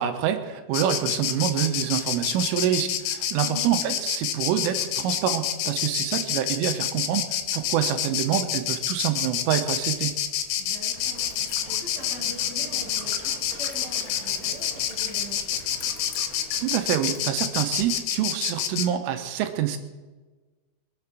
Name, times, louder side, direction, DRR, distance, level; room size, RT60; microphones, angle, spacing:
voice 1, 0.0-10.1 16.6-19.8, right 10 dB, 85° right, 8 dB, 3.4 m, -26 dB
Insect, 0.7-18.9, left 10 dB, 85° left, 3.5 m, -28 dB
voice 2, 3.4-3.8 10.6-15.6, right 1 dB, 20° left, -4 dB, 6.6 m, -43 dB
Liquid, 9.7-18.2, left 7 dB, 70° left, 2.7 m, -48 dB
sound 1, 10.9-16.8, right 4 dB, 50° right, 2.2 m, -46 dB
23.0 x 7.8 x 6.0 m, 1.3 s
omnidirectional pair, 5.6 m